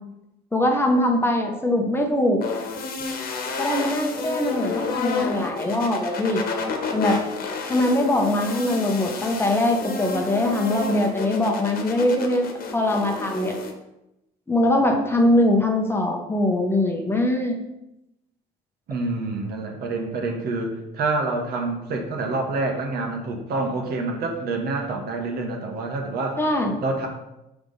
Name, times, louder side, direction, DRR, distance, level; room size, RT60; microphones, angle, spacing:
voice 1, 0.5-2.4 3.6-6.4 6.9-7.2 7.7-13.6 14.5-17.5 26.4-26.8, left 1 dB, 15° left, 2 dB, 0.9 m, -22 dB
sound 1, 2.4-13.7, left 4 dB, 60° left, 1.2 m, -30 dB
voice 2, 18.9-26.4 26.8-27.1, right 3 dB, 65° right, 2 dB, 1.3 m, -27 dB
5.9 x 3.5 x 5.4 m, 0.89 s
cardioid pair, 110°, 17 cm